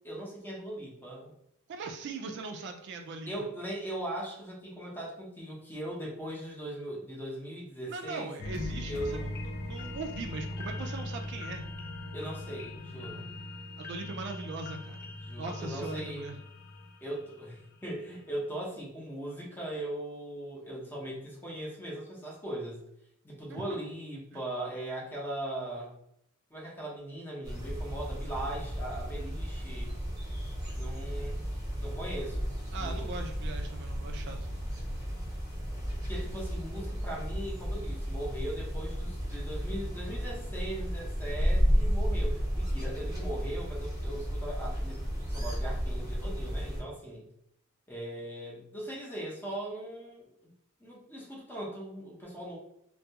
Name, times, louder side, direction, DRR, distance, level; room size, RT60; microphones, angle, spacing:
voice 1, 0.0-1.3 3.2-8.3 8.9-9.3 12.1-13.3 15.0-16.3 17.0-22.8 23.2-25.9 26.5-30.0 30.8-31.4 31.8-32.5 32.8-33.1 36.1-47.2 47.9-50.3 50.8-52.6, right 1 dB, 10° left, -4 dB, 0.7 m, -39 dB
voice 2, 1.7-3.5 7.9-11.7 13.8-15.0 15.4-16.4 23.5-23.8 24.3-24.4 32.7-34.5, right 3 dB, 55° right, 4 dB, 0.3 m, -40 dB
sound 1, 8.4-17.7 18.2-18.3, left 2 dB, 50° left, 0.4 m, -40 dB
sound 2, 27.4-46.8, equal, 20° right, 0.9 m, -33 dB
2.3 x 2.2 x 2.7 m, 0.76 s
head